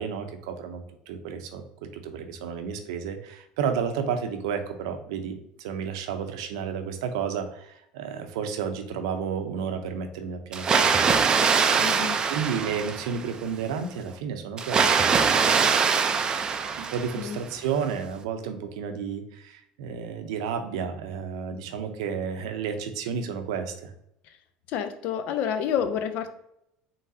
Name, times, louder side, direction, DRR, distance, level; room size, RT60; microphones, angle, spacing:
voice 1, 0.0-1.6 1.9-15.8 16.8-23.9, right 6 dB, 90° right, 6 dB, 0.6 m, -32 dB
Water, 10.5-13.3 14.6-17.4, right 5 dB, 30° right, 0.4 m, -23 dB
voice 2, 11.8-12.2 17.1-17.4 24.7-26.3, left 8 dB, 60° left, 9 dB, 0.6 m, -29 dB
3.9 x 3.8 x 2.7 m, 0.77 s
supercardioid pair, 120°, 3 cm